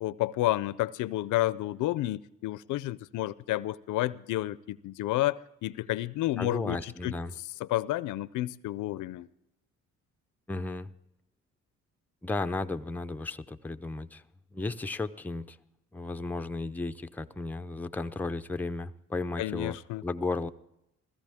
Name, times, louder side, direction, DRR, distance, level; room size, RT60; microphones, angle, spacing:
voice 1, 0.0-7.1 7.6-9.3 19.4-20.0, left 16 dB, 80° left, 0.5 m, -30 dB
voice 2, 6.4-7.3 10.5-10.9 12.2-14.2 14.5-15.6 15.9-19.8 20.0-20.5, left 3 dB, 5° left, 0.5 m, -34 dB
16.0 x 14.0 x 3.5 m
cardioid pair, 90°, 30 cm